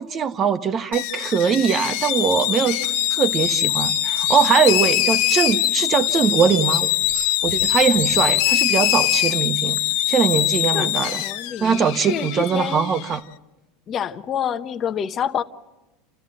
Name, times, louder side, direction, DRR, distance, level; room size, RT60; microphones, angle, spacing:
voice 1, 0.0-2.8 3.1-6.9 7.4-9.8 10.1-11.2 11.6-13.2, right 7 dB, 30° right, 10 dB, 1.2 m, -21 dB
sound 1, 0.9-13.2, left 14 dB, 65° left, 0.9 m, -22 dB
sound 2, 2.8-4.6 5.0-8.3, right 4 dB, 90° right, 4.2 m, -35 dB
voice 2, 10.7-12.9 13.9-15.4, left 8 dB, 35° left, 10 dB, 1.0 m, -28 dB
29.5 x 14.0 x 7.7 m, 1.0 s
supercardioid pair, 125°, 0 cm